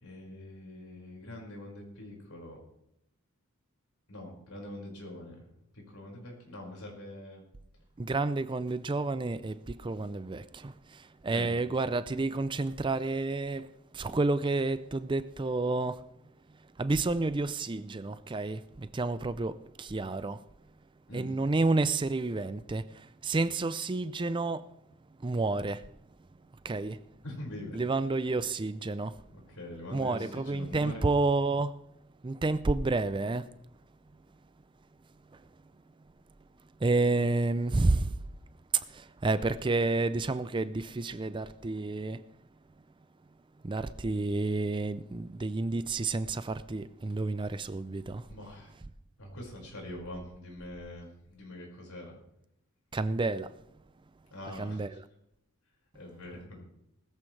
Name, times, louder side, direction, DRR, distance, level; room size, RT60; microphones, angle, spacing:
voice 1, 0.0-2.6 4.1-5.4 5.7-7.4 11.3-11.5 21.1-21.3 27.2-27.8 29.5-31.1 39.4-39.5 48.3-48.7 49.2-52.2 54.3-54.8 55.9-56.6, left 1 dB, 85° left, 5.3 m, -44 dB
voice 2, 8.0-16.0 16.8-20.4 21.1-24.7 25.2-25.9 26.6-27.0 27.7-29.2 29.9-31.8 32.2-33.5 35.3-35.4 36.8-38.2 38.7-42.2 43.6-48.3 52.9-53.5 54.5-55.0, right 3 dB, 20° right, 0.4 m, -30 dB
19.5 x 14.0 x 3.3 m
head